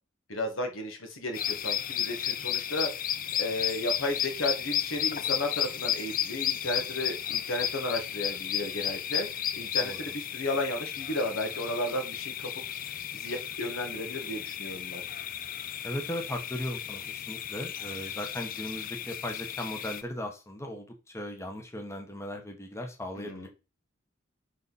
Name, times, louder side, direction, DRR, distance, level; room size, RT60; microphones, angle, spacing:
voice 1, 0.3-2.9 3.4-9.3 9.5-15.0 23.2-23.5, left 1 dB, 70° left, 4 dB, 2.0 m, -34 dB
sound 1, 1.3-20.0, left 10 dB, 45° left, 0.5 m, -33 dB
voice 2, 9.6-10.1 15.8-23.5, left 1 dB, 15° left, 3 dB, 1.2 m, -37 dB
10.0 x 4.2 x 4.2 m, 0.31 s
head